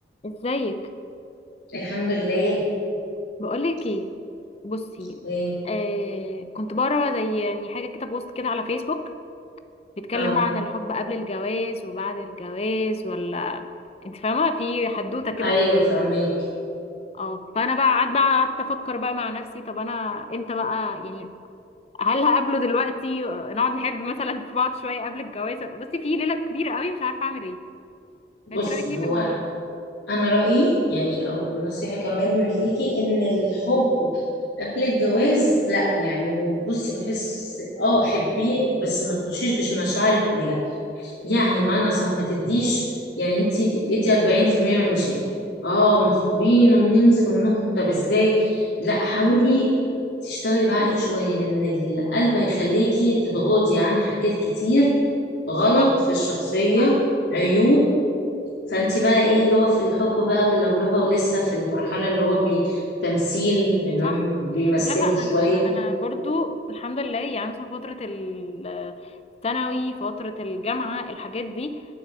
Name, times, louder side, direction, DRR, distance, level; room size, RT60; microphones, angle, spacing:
voice 1, 0.2-0.8 3.4-4.1 4.6-5.2 5.6-9.1 10.0-13.7 14.0-15.6 16.0-16.2 17.2-21.3 22.0-27.6 28.5-29.5 55.8-55.9 64.0-64.2 64.6-69.1 69.4-71.8, left 3 dB, 35° left, 9 dB, 0.6 m, -27 dB
voice 2, 1.7-2.6 5.2-5.6 10.1-10.4 15.4-16.3 28.5-29.3 30.1-34.1 34.6-40.6 41.0-42.8 43.2-45.2 45.6-49.7 50.2-54.9 55.5-57.0 57.3-57.8 58.7-65.7, equal, 90° left, -7 dB, 2.4 m, -21 dB
10.0 x 8.7 x 7.5 m, 2.6 s
head